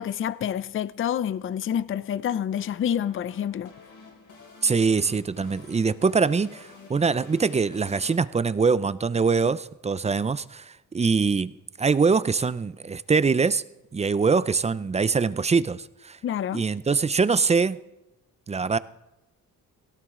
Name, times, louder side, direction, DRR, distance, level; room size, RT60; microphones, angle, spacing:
voice 1, 0.0-3.7 16.2-16.6, left 9 dB, 40° left, 0.5 m, -28 dB
sound 1, 1.3-8.2, left 4 dB, 70° left, 4.8 m, -49 dB
voice 2, 4.6-11.5 11.8-13.6 13.9-16.2 16.5-17.8 18.5-18.8, right 5 dB, 20° right, 0.5 m, -23 dB
18.0 x 17.5 x 3.7 m
cardioid pair, 100°, 32 cm